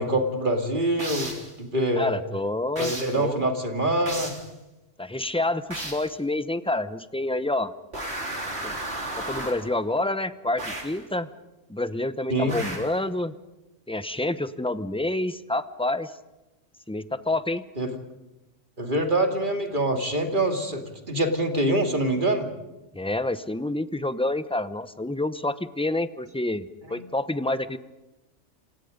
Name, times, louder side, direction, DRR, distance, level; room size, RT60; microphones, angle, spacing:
voice 1, 0.0-1.3 1.6-2.2 2.8-4.3 12.3-12.6 17.8-18.0 18.8-22.5 26.9-27.0, right 1 dB, 40° right, 4 dB, 2.7 m, -25 dB
sound 1, 1.0-1.5 2.8-3.2 4.1-4.5 5.7-6.1 7.9-9.7 10.6-11.0 12.5-13.0, right 1 dB, 60° right, 4.1 m, -34 dB
voice 2, 1.9-3.5 5.0-7.7 8.6-8.7 9.2-11.3 11.7-13.3 13.9-16.1 16.9-17.6 22.9-27.8, left 2 dB, 5° left, 12 dB, 0.7 m, -28 dB
28.5 x 26.5 x 5.3 m, 1.0 s
omnidirectional pair, 1.3 m